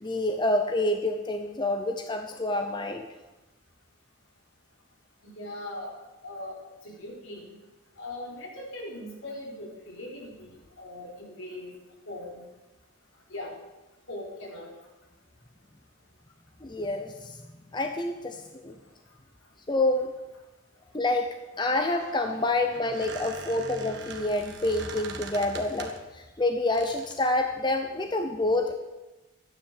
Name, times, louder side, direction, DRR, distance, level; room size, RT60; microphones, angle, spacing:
voice 1, 0.0-3.1 16.6-17.4 17.7-18.8 19.7-20.1 20.9-28.7, left 2 dB, 20° left, 5 dB, 0.7 m, -28 dB
voice 2, 5.2-5.9 6.2-7.6 8.0-11.7 12.1-12.4 13.3-13.6 14.1-14.7, left 1 dB, 75° left, -2 dB, 4.3 m, -40 dB
Squeak, 21.7-26.1 26.7-27.3, right 4 dB, 55° right, 1.6 m, -42 dB
12.5 x 10.0 x 7.5 m, 1.1 s
head